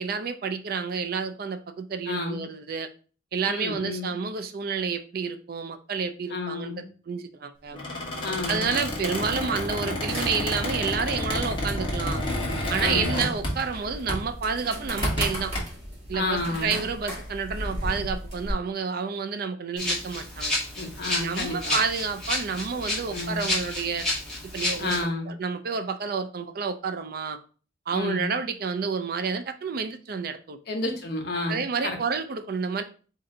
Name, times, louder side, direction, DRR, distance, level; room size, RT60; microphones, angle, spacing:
voice 1, 0.0-2.9 3.3-6.7 7.1-7.8 8.5-12.2 12.7-15.5 16.1-20.6 21.2-24.0 24.5-27.4 27.9-30.6 31.5-32.8, right 5 dB, 55° right, 9 dB, 0.4 m, -29 dB
voice 2, 2.1-2.4 3.4-4.2 6.3-6.8 8.2-8.7 12.8-13.2 16.1-16.8 20.8-21.8 23.1-23.5 24.8-25.3 27.9-28.3 30.7-32.0, left 2 dB, 60° left, 2 dB, 1.1 m, -31 dB
Squeak, 7.7-13.8 14.1-14.3 14.8-15.6, left 1 dB, 25° left, 1.2 m, -30 dB
sound 1, 10.1-18.5, equal, 35° right, 2.0 m, -37 dB
Rattle (instrument), 19.8-25.0, left 1 dB, 5° left, 1.6 m, -30 dB
4.3 x 2.8 x 3.7 m, 0.39 s
head